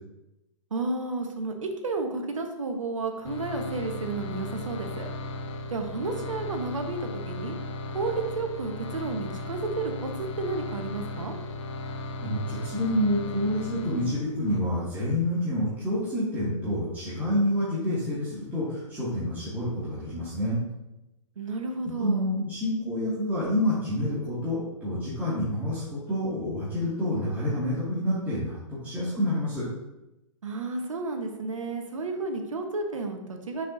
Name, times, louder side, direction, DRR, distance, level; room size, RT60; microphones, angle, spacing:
voice 1, 0.7-1.5 1.8-5.1 5.7-7.5 7.9-11.3 21.4-22.3 30.4-33.7, right 3 dB, 70° right, 5 dB, 1.1 m, -32 dB
sound 1, 3.2-14.6, left 2 dB, 60° left, 0.9 m, -36 dB
voice 2, 12.2-20.6 22.0-29.7, left 1 dB, 10° right, -12 dB, 2.2 m, -28 dB
6.5 x 5.7 x 2.7 m, 0.93 s
figure-of-eight pair, 120°, 17 cm